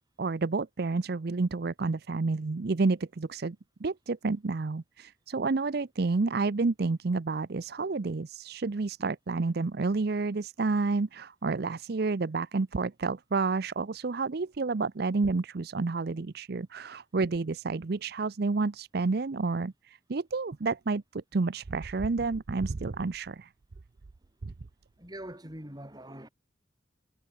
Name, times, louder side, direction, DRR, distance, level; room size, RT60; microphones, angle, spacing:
voice 1, 0.2-3.6 3.8-23.5 24.4-24.5, right 3 dB, 55° right, 0.6 m, -30 dB
voice 2, 25.0-26.3, right 1 dB, 20° right, 7.9 m, -43 dB
head